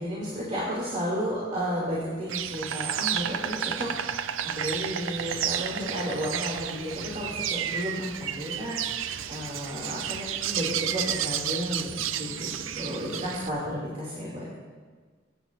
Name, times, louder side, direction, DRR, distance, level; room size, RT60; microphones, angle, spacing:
voice 1, 0.0-3.9 4.4-14.6, equal, 40° right, -6 dB, 3.1 m, -33 dB
Insect, 2.3-13.5, right 9 dB, 80° right, 0.5 m, -31 dB
23.5 x 10.5 x 2.8 m, 1.5 s
head